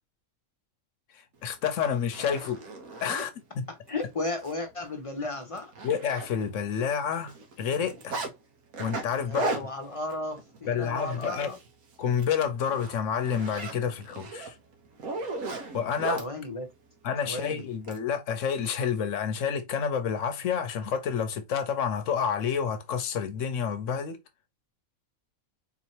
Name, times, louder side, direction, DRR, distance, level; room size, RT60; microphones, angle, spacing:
voice 1, 1.1-2.6 3.0-3.3 3.5-3.7 5.8-8.2 8.8-9.5 10.7-11.5 12.0-14.5 15.7-16.2 17.0-24.2, left 7 dB, 70° left, 1.0 m, -29 dB
Zipper (clothing), 1.5-1.6 2.0-3.3 3.9-4.0 4.4-4.5 4.9-5.0 5.3-6.7 6.9-8.3 8.7-11.7 12.0-12.3 12.7-16.3 17.3-18.0, right 3 dB, 85° right, 1.4 m, -37 dB
voice 2, 3.7-5.7 9.2-11.6 16.2-16.7 17.2-17.7, left 2 dB, 35° left, 0.6 m, -34 dB
3.9 x 3.0 x 2.8 m
omnidirectional pair, 1.5 m